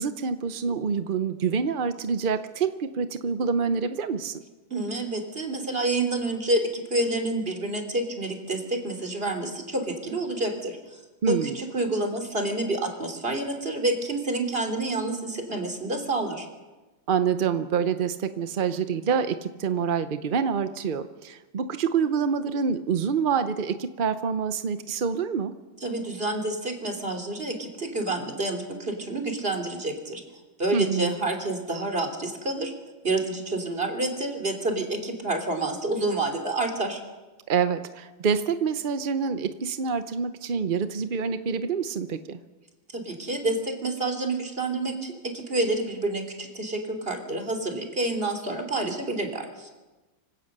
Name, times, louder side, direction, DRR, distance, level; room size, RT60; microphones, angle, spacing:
voice 1, 0.0-4.4 11.2-11.6 17.1-25.5 30.7-31.1 37.5-42.4, right 6 dB, 60° right, 10 dB, 0.5 m, -26 dB
voice 2, 4.7-11.0 11.3-16.5 25.8-30.2 30.6-32.7 33.0-37.0 42.9-49.7, right 2 dB, 30° right, 4 dB, 3.2 m, -28 dB
25.0 x 17.0 x 6.7 m, 1.2 s
omnidirectional pair, 2.0 m